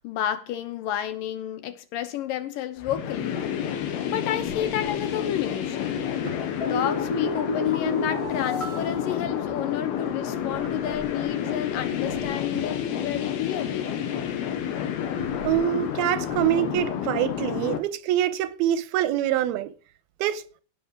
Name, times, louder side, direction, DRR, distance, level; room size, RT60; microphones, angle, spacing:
voice 1, 0.0-3.4 4.1-6.0 6.7-13.9, left 10 dB, 70° left, 2.5 m, -30 dB
sound 1, 2.8-17.8, left 9 dB, 90° left, 3.5 m, -30 dB
Drawer open or close, 4.1-5.1 5.5-6.5 10.2-11.3 11.7-12.8 15.0-15.7 16.0-17.3, equal, 30° right, 4.8 m, -43 dB
sound 2, 6.6-10.0 10.3-10.4, equal, 10° left, 2.9 m, -33 dB
voice 2, 15.4-19.7 20.2-20.4, right 12 dB, 90° right, 2.6 m, -25 dB
18.0 x 6.2 x 4.8 m
omnidirectional pair, 4.4 m